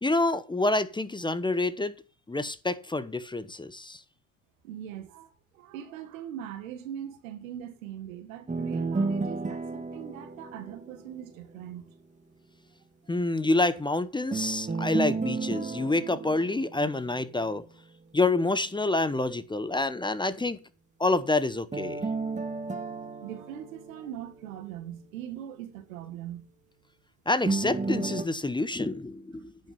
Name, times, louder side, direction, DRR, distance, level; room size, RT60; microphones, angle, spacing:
voice 1, 0.0-1.9 2.3-4.0 13.1-17.6 18.1-20.6 21.0-22.0 27.3-29.5, left 2 dB, 10° left, 0.8 m, -27 dB
voice 2, 4.6-11.9 13.0-13.1 22.7-22.9 23.2-26.5, right 10 dB, 85° right, 1.8 m, -41 dB
sound 1, 8.5-11.6 14.3-17.6 21.7-24.8 27.4-28.2, right 3 dB, 20° right, 1.8 m, -33 dB
10.0 x 6.0 x 6.9 m
hypercardioid pair, 70°, 39 cm